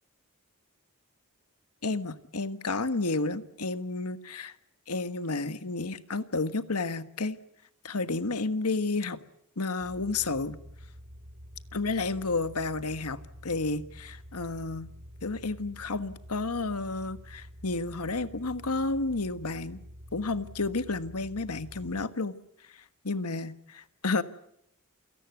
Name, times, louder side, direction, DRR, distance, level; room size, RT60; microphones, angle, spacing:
voice 1, 1.8-4.5 4.9-7.4 7.8-9.2 9.6-10.6 11.7-14.9 15.2-19.8 20.1-22.3 23.0-24.2, left 3 dB, 80° left, 12 dB, 1.5 m, -31 dB
sound 1, 9.8-22.1, equal, 60° right, 2.7 m, -48 dB
28.5 x 18.0 x 9.4 m, 0.75 s
head